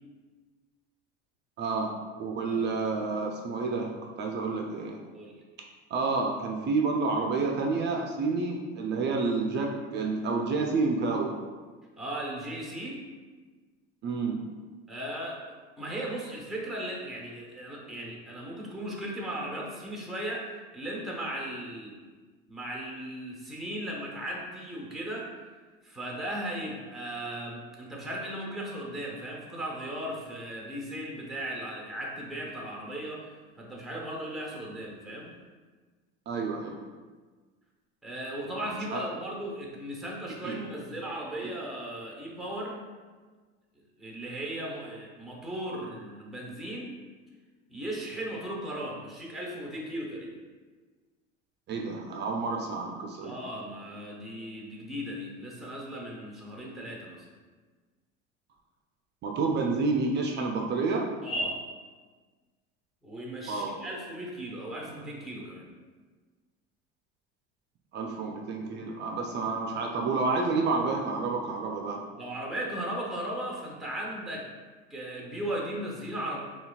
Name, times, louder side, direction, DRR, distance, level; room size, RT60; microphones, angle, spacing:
voice 1, 1.6-1.9 2.2-5.0 5.9-11.3 14.0-14.4 36.3-36.8 38.6-39.0 40.4-40.6 51.7-53.3 59.2-61.1 63.5-63.7 67.9-72.0, right 3 dB, 35° right, 1 dB, 0.4 m, -29 dB
voice 2, 12.0-13.0 14.9-22.0 22.5-25.3 25.8-33.3 33.6-35.3 38.0-42.8 44.0-47.0 47.7-50.3 53.2-57.3 61.2-61.6 63.0-65.7 72.2-74.5 74.9-76.4, right 1 dB, ahead, -2 dB, 0.8 m, -37 dB
5.6 x 2.3 x 2.3 m, 1.4 s
supercardioid pair, 115°, 32 cm